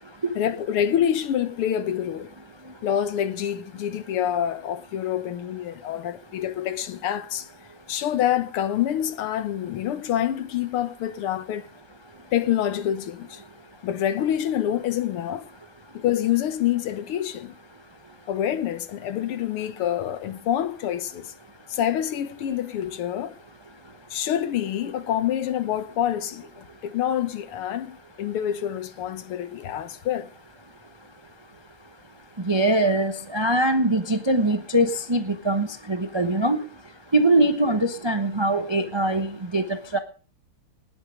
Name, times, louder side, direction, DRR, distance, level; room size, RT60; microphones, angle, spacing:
voice 1, 0.4-2.3 2.8-7.5 7.9-11.7 12.3-13.4 13.8-15.5 15.9-17.5 18.3-21.3 21.7-23.3 24.1-30.3, left 10 dB, 85° left, 2.0 m, -26 dB
voice 2, 32.4-36.6 37.1-40.0, right 1 dB, 25° right, 0.5 m, -22 dB
19.5 x 7.8 x 5.1 m
omnidirectional pair, 2.4 m